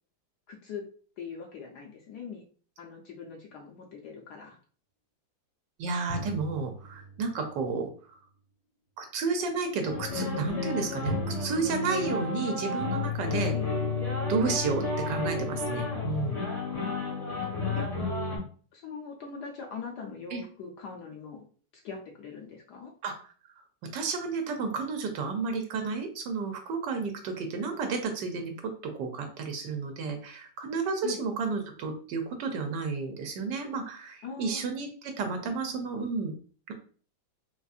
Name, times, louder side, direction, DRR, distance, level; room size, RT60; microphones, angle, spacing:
voice 1, 0.5-0.9 1.2-2.4 2.8-4.6 13.5-13.7 16.8-17.2 17.8-18.2 18.7-21.5 21.7-22.9 31.0-31.2 34.2-34.6, left 5 dB, 70° left, 1 dB, 1.1 m, -41 dB
voice 2, 5.8-8.2 9.0-13.5 14.3-16.4 20.3-20.4 23.0-23.1 23.9-36.3 36.7-36.8, right 4 dB, 75° right, 4 dB, 1.2 m, -32 dB
sound 1, 6.1-7.7 11.0-11.7, equal, 85° left, 0.4 m, -36 dB
sound 2, 9.8-18.4, left 4 dB, 30° left, 0.8 m, -31 dB
4.1 x 2.5 x 2.4 m, 0.42 s
omnidirectional pair, 2.0 m